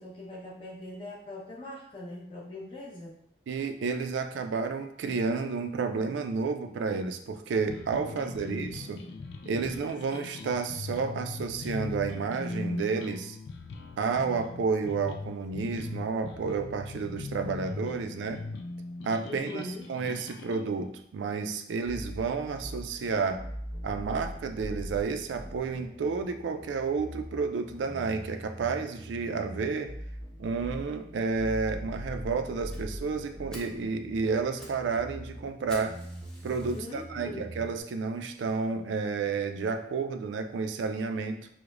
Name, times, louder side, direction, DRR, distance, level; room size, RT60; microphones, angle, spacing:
voice 1, 0.0-3.2 8.1-8.7 19.2-19.9 36.7-37.4, left 2 dB, 30° left, -6 dB, 0.9 m, -41 dB
voice 2, 3.5-9.0 9.5-13.4 14.0-18.4 19.0-19.6 19.9-23.4 23.8-29.9 30.4-35.9 36.4-41.5, right 4 dB, 85° right, 7 dB, 0.3 m, -31 dB
sound 1, 7.7-20.6, left 3 dB, 75° left, 0.3 m, -40 dB
sound 2, 21.8-37.8, equal, 15° right, 0.9 m, -42 dB
Fire, 32.7-32.8 33.2-33.3 33.5-33.8 34.3-34.8 35.1-35.2 35.7-37.0 37.6-37.7 38.3-38.4 38.6-38.7 39.1-39.2, equal, 5° left, 0.5 m, -49 dB
4.7 x 2.1 x 2.4 m, 0.69 s
head